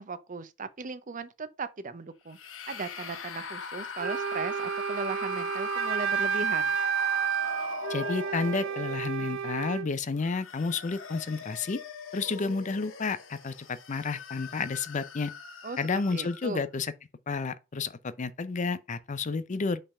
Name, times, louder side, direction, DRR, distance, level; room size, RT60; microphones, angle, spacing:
voice 1, 0.0-2.4 2.7-6.8 15.6-15.8 16.1-16.6, right 4 dB, 40° right, 0.6 m, -37 dB
sound 1, 2.3-9.4 10.1-16.6, left 5 dB, 85° left, 1.0 m, -41 dB
Wind instrument woodwind instrument, 4.0-9.9, right 7 dB, 85° right, 0.5 m, -30 dB
voice 2, 7.9-11.8 12.1-15.3 15.8-16.9 17.3-19.8, left 4 dB, 40° left, 0.5 m, -31 dB
5.6 x 3.4 x 5.3 m
head